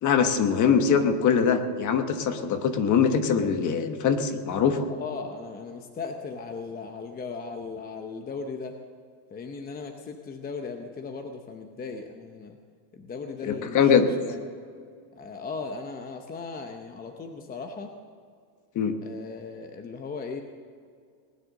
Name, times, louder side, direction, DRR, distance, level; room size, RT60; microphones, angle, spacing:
voice 1, 0.0-4.9 13.4-14.1 18.7-19.0, left 6 dB, 35° left, 8 dB, 1.2 m, -22 dB
voice 2, 4.9-8.8 9.3-12.6 12.9-14.4 15.2-17.9 19.0-20.4, left 4 dB, 20° left, 5 dB, 0.8 m, -37 dB
19.5 x 9.9 x 6.5 m, 2.2 s
cardioid pair, 150°, 49 cm